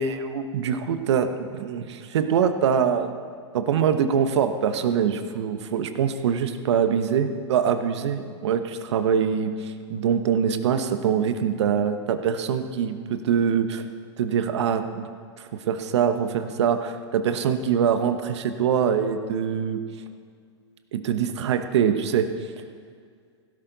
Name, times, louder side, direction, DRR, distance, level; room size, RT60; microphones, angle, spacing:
voice 1, 0.0-3.1 3.5-13.8 14.2-15.1 15.4-19.8 20.9-22.3, right 7 dB, 75° right, 9 dB, 1.0 m, -24 dB
16.5 x 11.5 x 4.0 m, 2.1 s
hypercardioid pair, 115°, 15 cm